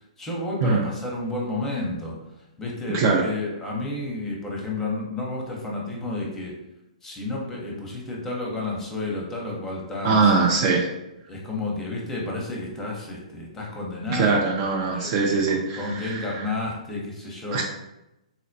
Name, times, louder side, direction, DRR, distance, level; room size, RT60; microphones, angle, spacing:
voice 1, 0.2-2.2 2.6-6.5 7.0-10.5 11.3-14.4 14.9-17.6, left 2 dB, 10° left, -2 dB, 0.7 m, -31 dB
voice 2, 10.0-10.9 14.1-16.3 17.5-17.6, right 4 dB, 40° right, 0 dB, 0.4 m, -22 dB
3.9 x 2.1 x 2.6 m, 0.90 s
hypercardioid pair, 130°, 4 cm